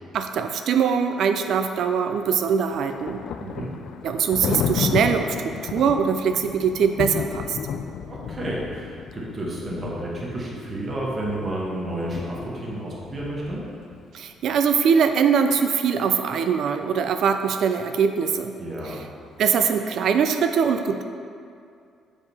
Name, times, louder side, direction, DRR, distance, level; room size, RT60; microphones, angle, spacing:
voice 1, 0.1-3.2 4.0-7.6 14.1-18.6 18.8-19.0 19.4-21.0, right 6 dB, 60° right, 7 dB, 0.3 m, -22 dB
Thunder, 2.2-14.0, left 7 dB, 60° left, 0.3 m, -33 dB
voice 2, 3.4-3.7 8.1-13.6 18.6-19.0, right 1 dB, 25° right, -5 dB, 1.1 m, -31 dB
7.1 x 5.0 x 4.0 m, 2.4 s
cardioid pair, 160°, 0 cm